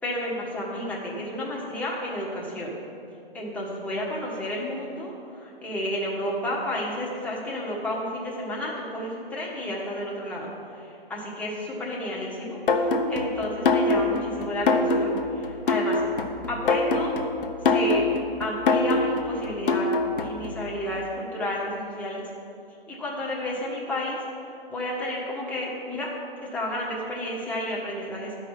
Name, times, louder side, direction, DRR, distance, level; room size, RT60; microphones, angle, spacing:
voice 1, 0.0-2.7 3.3-16.0 16.5-17.2 17.6-18.0 18.4-22.2 22.9-24.2 24.7-26.1 26.5-28.4, left 1 dB, 5° left, -5 dB, 1.4 m, -31 dB
sound 1, 12.7-20.5, left 3 dB, 60° left, 1.0 m, -24 dB
11.5 x 5.0 x 5.9 m, 2.6 s
figure-of-eight pair, 135°, 30 cm